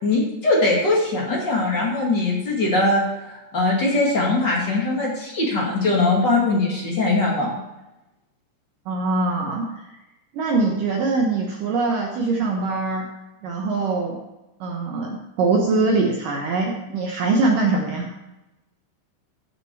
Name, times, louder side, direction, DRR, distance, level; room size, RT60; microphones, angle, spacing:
voice 1, 0.0-7.6, left 2 dB, 45° left, -3 dB, 1.4 m, -21 dB
voice 2, 8.9-10.0 10.3-13.1 13.4-14.2 14.6-18.1, right 3 dB, 85° right, 0 dB, 1.9 m, -23 dB
15.5 x 6.3 x 4.6 m, 0.97 s
omnidirectional pair, 5.5 m